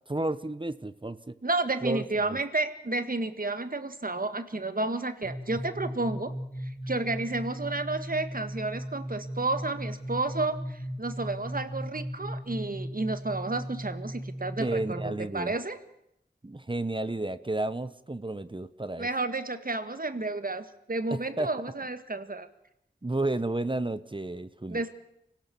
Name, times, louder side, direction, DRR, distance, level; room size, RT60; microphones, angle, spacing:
voice 1, 0.0-1.3 1.8-2.4 14.6-15.5 16.4-19.1 21.1-21.5 23.0-24.8, right 2 dB, 25° right, 14 dB, 1.0 m, -32 dB
voice 2, 1.4-6.3 6.6-15.8 19.0-22.5 24.7-24.9, right 2 dB, 50° right, 10 dB, 1.8 m, -31 dB
sound 1, 5.2-15.1, equal, 85° left, 3.4 m, -37 dB
25.5 x 16.5 x 7.1 m, 0.82 s
wide cardioid pair, 45°, 18 cm